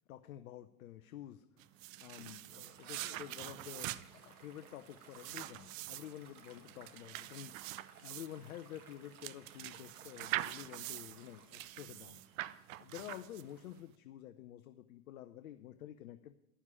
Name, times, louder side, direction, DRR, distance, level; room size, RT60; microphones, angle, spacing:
voice 1, 0.1-1.5 2.0-16.3, left 12 dB, 75° left, 9 dB, 0.8 m, -50 dB
sound 1, 1.6-13.7, right 16 dB, 65° right, 0.7 m, -44 dB
sound 2, 2.6-13.8, right 6 dB, 80° right, 1.7 m, -60 dB
11.5 x 7.3 x 8.3 m, 0.89 s
hypercardioid pair, 90°, 43 cm